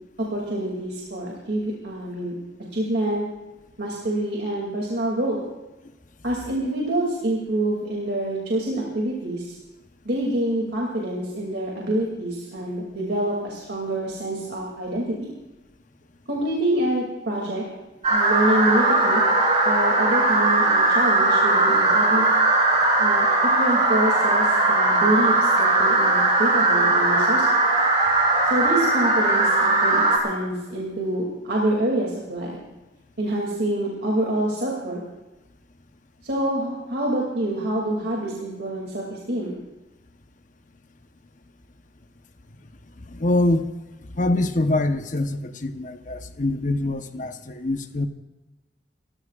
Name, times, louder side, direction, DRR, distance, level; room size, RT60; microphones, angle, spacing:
voice 1, 0.2-2.3 2.7-3.2 3.8-5.4 6.2-9.5 10.0-15.3 16.3-17.6 18.1-19.2 19.6-22.3 23.0-27.7 28.4-32.5 33.2-35.0 36.2-39.6, right 1 dB, 70° right, -2 dB, 2.8 m, -26 dB
sound 1, 18.0-30.2, right 2 dB, 40° right, 3.6 m, -19 dB
voice 2, 43.0-43.7 44.1-48.1, left 2 dB, 50° left, 8 dB, 1.0 m, -24 dB
29.5 x 15.0 x 2.5 m, 1.1 s
head